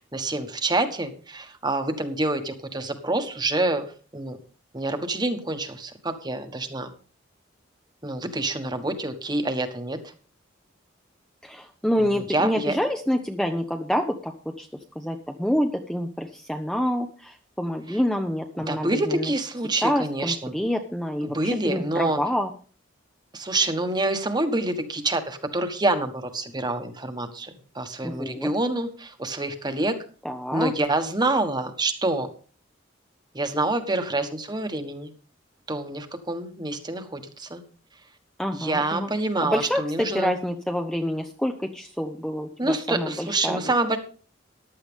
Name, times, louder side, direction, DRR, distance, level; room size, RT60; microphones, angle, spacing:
voice 1, 0.1-4.4 4.7-6.9 8.0-10.1 12.1-12.8 17.9-18.0 18.7-20.5 21.2-22.2 23.3-29.9 30.5-32.3 33.3-35.1 35.7-37.6 38.5-40.3 42.6-44.0, right 2 dB, 20° right, 8 dB, 1.4 m, -27 dB
voice 2, 11.4-14.7 15.0-19.3 19.8-22.5 28.0-28.5 30.2-30.7 38.4-39.1 39.4-39.8 40.1-43.7, equal, 5° left, 4 dB, 0.8 m, -27 dB
14.5 x 11.0 x 3.6 m, 0.39 s
head